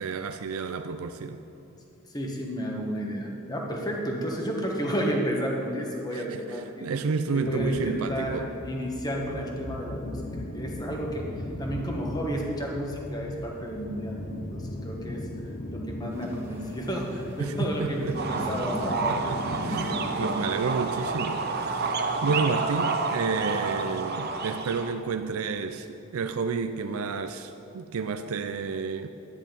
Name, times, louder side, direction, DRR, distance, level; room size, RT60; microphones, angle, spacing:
voice 1, 0.0-1.4 6.1-8.5 17.4-18.5 18.9-29.1, right 5 dB, 75° right, 8 dB, 0.4 m, -31 dB
voice 2, 2.1-6.9 7.3-10.2 10.5-11.3 11.6-15.3 15.7-19.1, equal, 20° left, -1 dB, 1.3 m, -31 dB
sound 1, 7.4-20.7, left 1 dB, 35° left, 0.7 m, -38 dB
sound 2, 16.1-24.0, right 1 dB, 10° right, 1.4 m, -40 dB
sound 3, 18.2-24.9, right 4 dB, 45° right, 0.8 m, -29 dB
11.5 x 10.0 x 5.3 m, 2.8 s
head